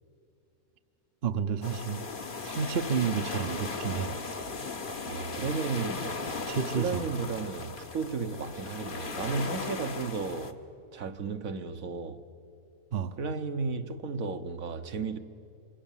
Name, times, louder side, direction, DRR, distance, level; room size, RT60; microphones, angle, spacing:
voice 1, 1.2-2.0 2.4-4.2 6.5-7.1 12.9-13.2, right 6 dB, 50° right, 1.0 m, -30 dB
sound 1, 1.6-10.5, left 4 dB, 40° left, 1.3 m, -37 dB
voice 2, 5.0-6.4 6.8-10.6 10.9-12.2 13.2-15.2, right 4 dB, 70° right, 1.5 m, -34 dB
27.5 x 24.0 x 7.4 m
omnidirectional pair, 1.5 m